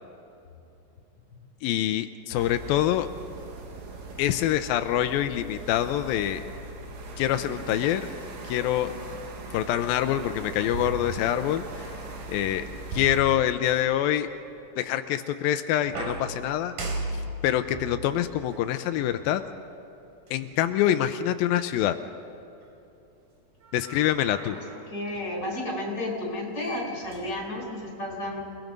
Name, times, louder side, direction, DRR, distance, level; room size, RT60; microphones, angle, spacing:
voice 1, 1.6-3.1 4.2-6.4 7.2-8.1 8.4-8.9 9.5-11.9 12.3-12.7 12.9-14.3 14.8-16.7 17.4-19.4 20.3-22.0 23.7-24.6, left 12 dB, 90° left, 9 dB, 2.0 m, -25 dB
sound 1, 2.3-13.2, right 2 dB, 85° right, 4.5 m, -40 dB
sound 2, 10.7-11.8 12.9-14.1 15.8-19.4 20.3-20.4 23.6-24.9 26.3-26.4 26.6-27.8, right 2 dB, 55° right, 4.4 m, -38 dB
voice 2, 24.9-28.4, left 1 dB, 25° left, 0 dB, 4.9 m, -32 dB
29.0 x 19.5 x 5.3 m, 2.8 s
omnidirectional pair, 5.0 m